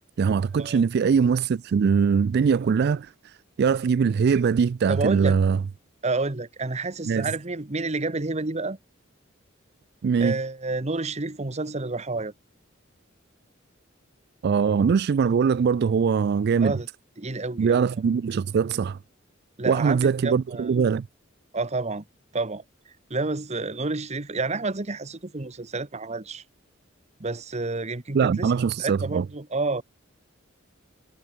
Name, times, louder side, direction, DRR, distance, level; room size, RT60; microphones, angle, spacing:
voice 1, 0.2-5.6 7.1-7.3 10.0-10.4 14.4-16.7 17.6-19.0 19.7-21.1 28.1-29.3, right 6 dB, 55° right, 0.3 m, -22 dB
voice 2, 4.9-5.4 6.0-8.8 10.2-12.3 16.6-16.9 17.2-17.9 19.6-20.7 21.5-22.0 22.3-22.6 23.1-26.4 27.2-28.5 28.8-29.8, right 3 dB, 35° right, 1.2 m, -29 dB
head